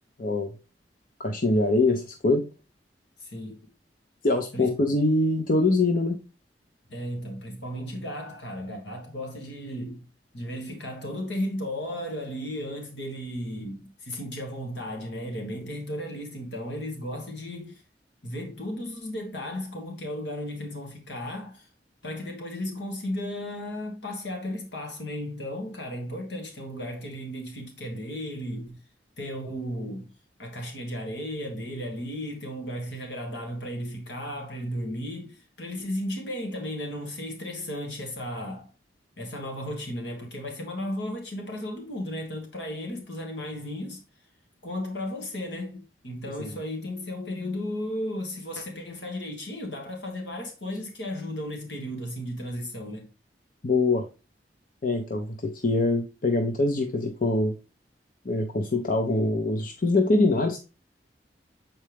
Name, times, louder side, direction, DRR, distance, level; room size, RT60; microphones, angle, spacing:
voice 1, 0.2-0.5 1.2-2.4 4.2-6.2 53.6-54.1 54.8-57.5 58.2-60.6, left 2 dB, 50° left, 0.8 m, -24 dB
voice 2, 3.2-3.6 4.5-4.8 6.9-10.1 10.3-17.8 18.2-21.7 22.0-28.8 29.2-30.1 30.4-38.7 39.2-44.0 44.6-53.1, left 1 dB, 75° left, 1.7 m, -35 dB
7.5 x 4.4 x 3.4 m
head